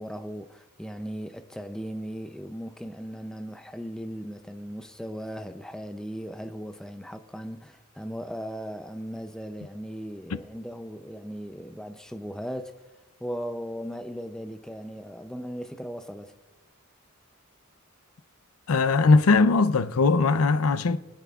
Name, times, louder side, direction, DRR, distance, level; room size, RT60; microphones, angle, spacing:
voice 1, 0.0-12.7 13.2-16.3, equal, 5° left, 0.5 m, -37 dB
voice 2, 18.7-21.0, left 3 dB, 75° left, 0.6 m, -20 dB
24.0 x 10.5 x 2.4 m
head